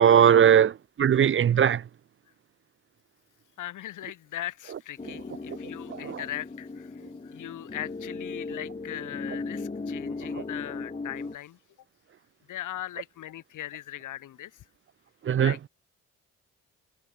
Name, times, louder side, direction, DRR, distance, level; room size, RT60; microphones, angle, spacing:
voice 1, 0.0-1.8 6.0-6.2 15.2-15.5, right 9 dB, 40° right, 0.6 m, -19 dB
voice 2, 3.6-11.6 12.5-14.6 15.4-15.7, left 13 dB, 85° left, 7.4 m, -39 dB
sound 1, 5.0-11.4, left 3 dB, 25° left, 5.4 m, -37 dB
cardioid pair, 100°, 30 cm